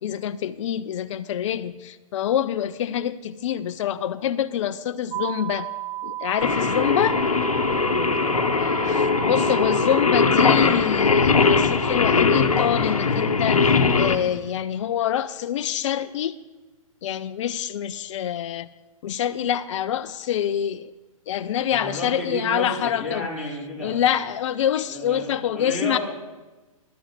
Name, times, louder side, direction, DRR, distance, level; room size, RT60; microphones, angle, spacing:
voice 1, 0.0-5.7 6.0-7.2 8.9-16.4 17.0-18.7 19.0-20.9 21.3-23.3 23.8-26.0, left 10 dB, 60° left, 0.5 m, -26 dB
sound 1, 5.1-10.4, right 14 dB, 40° right, 2.7 m, -32 dB
Singing, 6.4-14.1, left 4 dB, 90° left, 0.9 m, -20 dB
voice 2, 21.7-23.9 24.9-26.0, equal, ahead, 3.5 m, -32 dB
11.0 x 6.2 x 8.2 m
hypercardioid pair, 125°, 18 cm